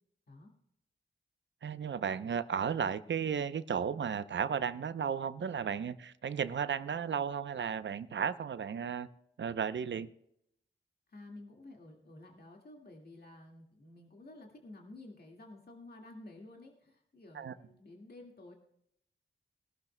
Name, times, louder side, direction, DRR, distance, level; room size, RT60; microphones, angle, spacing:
voice 1, 1.6-9.1 9.4-10.1 17.3-17.5, right 7 dB, 70° right, 13 dB, 0.7 m, -34 dB
voice 2, 11.1-18.5, left 2 dB, 55° left, 0 dB, 2.0 m, -52 dB
20.0 x 12.0 x 2.2 m, 0.76 s
cardioid pair, 50°, 20 cm